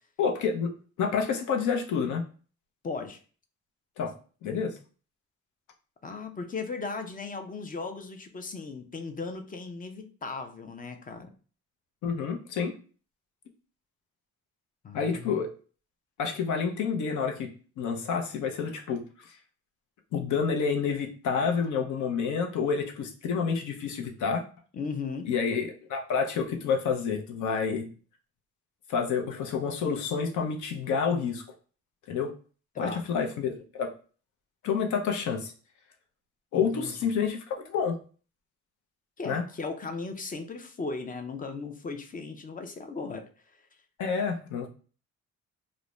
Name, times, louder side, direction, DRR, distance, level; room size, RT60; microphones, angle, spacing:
voice 1, 0.2-2.2 4.0-4.1 4.4-4.7 12.0-12.7 14.9-15.5 16.2-17.5 17.8-19.3 20.1-24.4 25.2-27.9 28.9-31.4 32.1-32.3 32.8-33.9 34.6-35.5 36.5-38.0 39.2-39.4 44.0-44.7, left 6 dB, 75° left, 3 dB, 0.7 m, -29 dB
voice 2, 2.8-3.2 6.0-11.3 14.8-15.4 24.7-25.3 32.7-33.1 36.5-37.1 39.2-43.6, left 4 dB, 30° left, 6 dB, 0.4 m, -37 dB
2.5 x 2.1 x 3.1 m, 0.39 s
cardioid pair, 90°, 30 cm